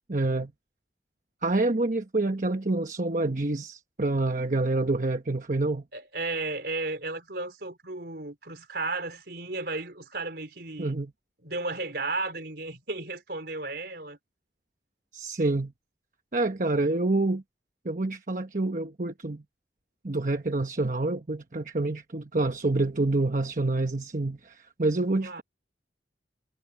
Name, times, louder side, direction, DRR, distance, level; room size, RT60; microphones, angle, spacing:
voice 1, 0.1-0.5 1.4-5.8 10.8-11.1 15.1-15.7 16.3-17.4 17.8-19.4 20.0-25.4, right 2 dB, 45° right, 1.1 m, -27 dB
voice 2, 5.9-11.0 11.4-14.2 25.2-25.4, right 3 dB, 60° right, 4.4 m, -34 dB
head